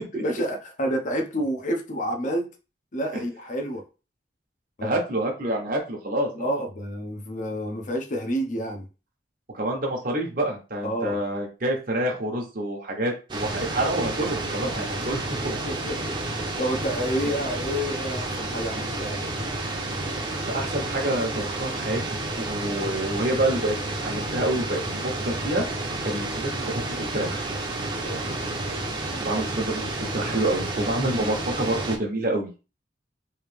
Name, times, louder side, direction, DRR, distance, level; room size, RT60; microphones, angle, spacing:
voice 1, 0.0-2.5 2.9-3.8 4.8-5.0 6.3-8.8 10.8-11.2 14.6-15.1 15.4-19.3 28.0-28.3 29.1-29.3, equal, 45° left, 4 dB, 0.7 m, -29 dB
voice 2, 4.8-6.6 9.5-15.6 20.5-22.0 22.4-25.6 26.0-27.4 29.2-32.6, right 1 dB, 50° right, 1 dB, 0.9 m, -27 dB
sound 1, 13.3-32.0, right 2 dB, 25° right, 0.7 m, -30 dB
3.2 x 2.8 x 3.3 m, 0.32 s
head